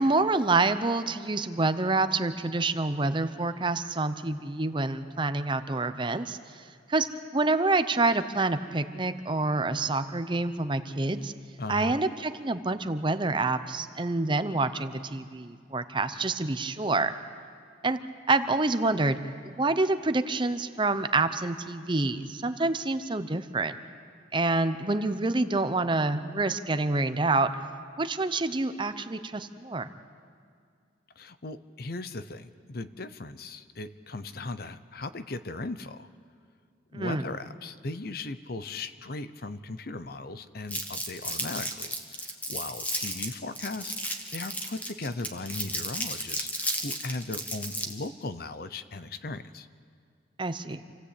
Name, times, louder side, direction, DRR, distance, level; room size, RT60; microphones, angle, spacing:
voice 1, 0.0-6.4 6.9-7.1 7.3-11.3 11.7-17.1 17.8-18.0 18.3-19.2 19.4-23.7 24.3-27.5 28.0-29.9 36.9-37.2 50.4-50.8, right 3 dB, 25° right, 10 dB, 0.8 m, -27 dB
voice 2, 11.6-12.0 31.2-36.1 36.9-49.7, left 2 dB, 55° left, 12 dB, 0.8 m, -38 dB
Crumpling crinkling, 40.7-48.1, equal, 10° left, 1.6 m, -33 dB
28.0 x 16.5 x 8.4 m, 2.3 s
head